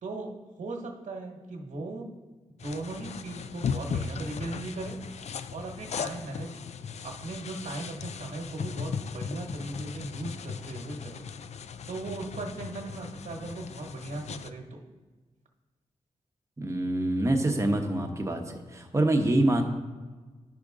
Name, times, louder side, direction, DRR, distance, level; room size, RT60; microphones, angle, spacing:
voice 1, 0.0-2.1 2.6-5.0 5.5-6.5 7.0-11.2 11.9-14.8, right 2 dB, 85° right, 1 dB, 1.2 m, -38 dB
sound 1, 2.6-14.5, left 6 dB, 60° left, 0.4 m, -37 dB
voice 2, 16.6-19.6, right 1 dB, 25° right, 3 dB, 0.9 m, -26 dB
10.5 x 5.2 x 3.6 m, 1.3 s
wide cardioid pair, 95°, 13 cm